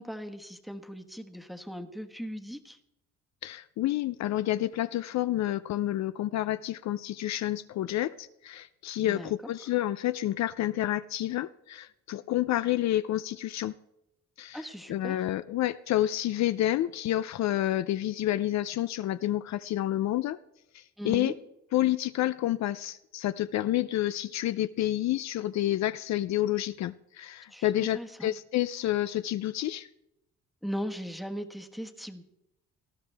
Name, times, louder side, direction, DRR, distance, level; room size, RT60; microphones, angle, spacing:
voice 1, 0.0-2.8 9.0-9.5 14.5-15.2 21.0-21.3 27.5-28.4 30.6-32.2, equal, ahead, 6 dB, 1.2 m, -38 dB
voice 2, 3.4-13.7 14.4-20.4 20.7-21.3 21.7-29.9, left 13 dB, 65° left, 13 dB, 0.5 m, -29 dB
18.5 x 12.0 x 3.4 m, 0.84 s
cardioid pair, 90°, 30 cm